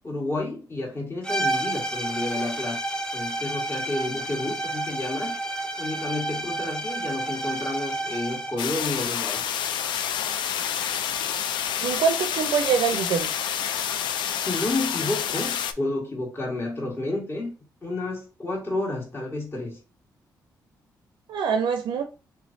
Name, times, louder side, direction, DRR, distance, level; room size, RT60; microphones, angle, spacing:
voice 1, 0.0-2.8 3.1-5.3 5.8-9.4 14.1-14.2 14.4-17.5 17.8-19.8, left 2 dB, 30° left, 1.5 m, -30 dB
sound 1, 1.2-8.7, right 1 dB, 10° left, 0.6 m, -30 dB
sound 2, 8.6-15.7, left 9 dB, 80° left, 0.3 m, -28 dB
voice 2, 11.8-13.5 21.3-22.1, right 6 dB, 80° right, 0.4 m, -24 dB
3.3 x 3.1 x 2.6 m
supercardioid pair, 60°, 8 cm